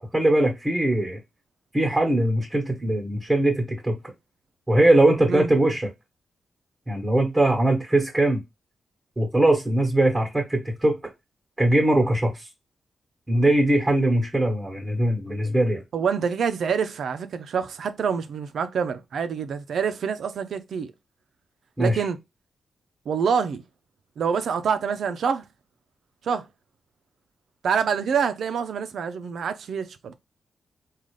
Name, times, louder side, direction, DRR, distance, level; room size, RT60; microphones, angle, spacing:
voice 1, 0.1-1.2 1.7-4.0 4.7-5.9 6.9-8.4 9.2-11.0 11.6-12.5 13.3-15.8 21.8-22.1, right 1 dB, 15° right, 1.1 m, -21 dB
voice 2, 15.9-20.9 21.8-22.2 23.1-23.6 24.2-25.4 26.2-26.4 27.6-30.2, right 6 dB, 75° right, 0.5 m, -26 dB
3.7 x 2.4 x 3.2 m
cardioid pair, 85°, 0 cm